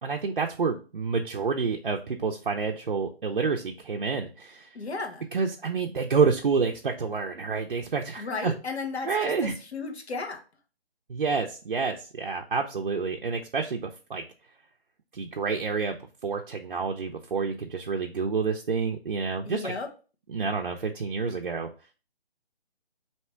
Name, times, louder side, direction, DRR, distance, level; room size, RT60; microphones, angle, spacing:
voice 1, 0.0-4.7 5.3-8.5 9.1-9.5 11.1-14.2 15.1-16.0 16.2-19.8 20.3-21.7, right 5 dB, 55° right, 2 dB, 0.5 m, -28 dB
voice 2, 4.7-5.2 8.2-10.4 19.4-19.9, left 3 dB, 85° left, 4 dB, 1.2 m, -34 dB
3.4 x 2.9 x 4.4 m, 0.35 s
hypercardioid pair, 175°, 32 cm